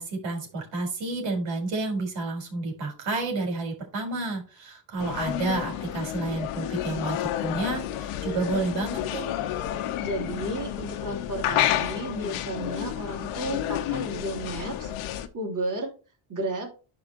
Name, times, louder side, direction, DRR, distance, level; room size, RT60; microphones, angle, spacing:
voice 1, 0.0-9.3, right 3 dB, 60° right, 1 dB, 4.5 m, -30 dB
sound 1, 5.0-15.3, left 12 dB, 80° left, 1.1 m, -30 dB
voice 2, 10.0-14.9 15.3-15.9 16.3-16.7, right 1 dB, 40° right, 0 dB, 3.4 m, -33 dB
11.5 x 5.1 x 3.0 m, 0.34 s
cardioid pair, 120°, 50 cm